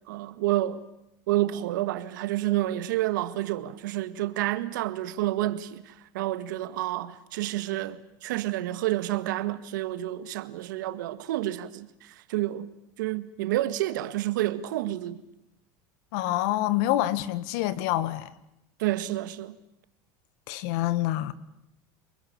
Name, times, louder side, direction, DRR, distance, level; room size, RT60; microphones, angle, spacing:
voice 1, 0.1-0.8 1.3-12.7 13.0-15.2 18.8-19.6, right 15 dB, 85° right, 1.8 m, -29 dB
voice 2, 16.1-18.3 20.5-21.3, left 14 dB, 70° left, 1.8 m, -26 dB
28.0 x 21.5 x 8.8 m
supercardioid pair, 115°, 10 cm